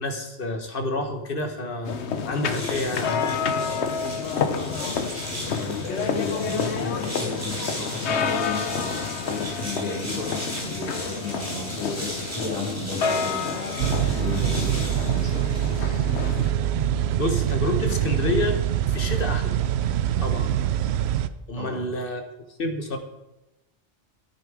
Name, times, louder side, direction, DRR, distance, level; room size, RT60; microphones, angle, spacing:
voice 1, 0.0-2.0 2.3-3.3 17.2-18.6 18.9-19.6 20.2-20.5 21.5-22.2 22.6-23.0, left 1 dB, 55° left, 6 dB, 1.6 m, -28 dB
sound 1, 1.9-16.5, left 6 dB, 75° left, 1.1 m, -29 dB
sound 2, 2.3-16.0, equal, 15° right, 3.6 m, -37 dB
voice 2, 4.3-16.0 21.5-21.8, left 2 dB, 30° left, -4 dB, 4.6 m, -34 dB
sound 3, 13.8-21.3, right 10 dB, 70° right, 0.8 m, -24 dB
13.0 x 8.9 x 5.0 m, 0.99 s
omnidirectional pair, 1.1 m